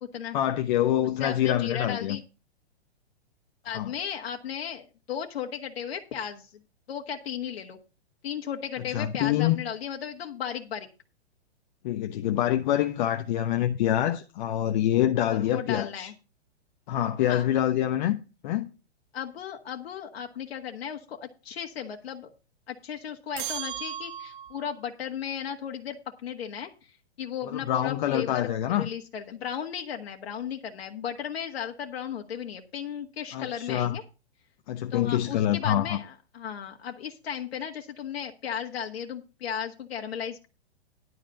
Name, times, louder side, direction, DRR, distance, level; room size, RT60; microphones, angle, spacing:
voice 1, 0.3-2.2 3.7-3.9 8.9-9.6 11.8-16.1 16.9-18.2 18.4-18.7 27.4-28.9 33.3-34.0 34.7-36.0, left 11 dB, 45° left, 0.9 m, -26 dB
voice 2, 1.2-2.2 3.6-6.5 6.9-7.8 8.2-10.9 15.3-16.1 17.3-17.5 19.1-22.3 22.7-28.5 28.8-34.0 34.9-40.5, left 8 dB, 65° left, 1.6 m, -35 dB
sound 1, 23.4-24.7, right 10 dB, 50° right, 1.0 m, -36 dB
11.0 x 5.0 x 6.9 m
hypercardioid pair, 125°, 32 cm